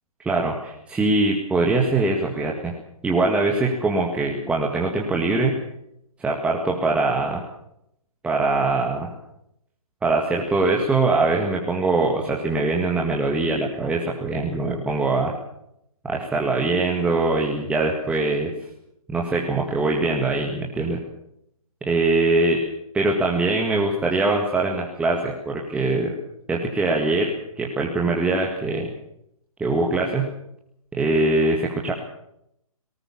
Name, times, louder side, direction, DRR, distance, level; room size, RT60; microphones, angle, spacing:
voice 1, 0.3-2.7 3.0-5.6 6.2-7.4 8.2-9.1 10.0-15.3 16.0-18.5 19.1-21.0 21.8-22.6 22.9-26.1 26.5-27.3 27.6-28.9 29.6-30.3 30.9-31.9, right 3 dB, 5° right, -1 dB, 1.9 m, -22 dB
19.5 x 18.5 x 7.4 m, 0.78 s
figure-of-eight pair, 140°, 19 cm